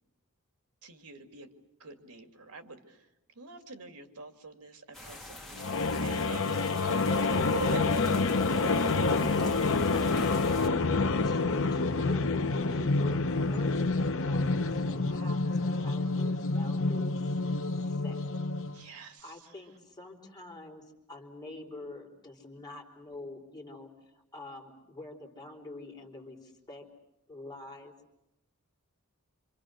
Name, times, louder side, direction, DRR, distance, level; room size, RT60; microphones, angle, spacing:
voice 1, 0.8-1.5 1.8-3.1 3.4-5.4 6.0-8.1 8.5-9.0 9.4-9.6 18.7-19.3, right 3 dB, 85° right, 7 dB, 2.4 m, -45 dB
sound 1, 4.9-10.7, left 1 dB, ahead, 3.0 m, -46 dB
sound 2, 5.6-18.8, left 3 dB, 60° left, 1.0 m, -28 dB
sound 3, 6.3-17.4 17.8-17.9, left 1 dB, 45° left, 1.9 m, -45 dB
voice 2, 11.2-17.3 17.8-18.2 18.7-26.9 27.3-27.9, left 2 dB, 20° left, -1 dB, 4.3 m, -46 dB
27.0 x 27.0 x 6.5 m, 0.87 s
head